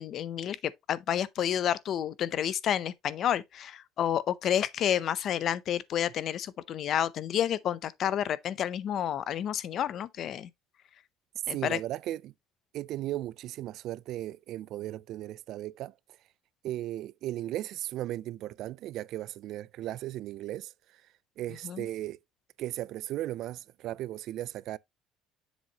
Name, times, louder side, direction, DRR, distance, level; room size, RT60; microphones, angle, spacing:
voice 1, 0.0-10.5 11.5-11.8 21.6-21.9, left 10 dB, 45° left, 0.5 m, -30 dB
voice 2, 11.5-12.3 12.7-15.9 16.6-20.7 21.4-22.2 22.6-24.8, right 14 dB, 55° right, 0.3 m, -36 dB
7.3 x 5.9 x 2.8 m
cardioid pair, 150°, 0 cm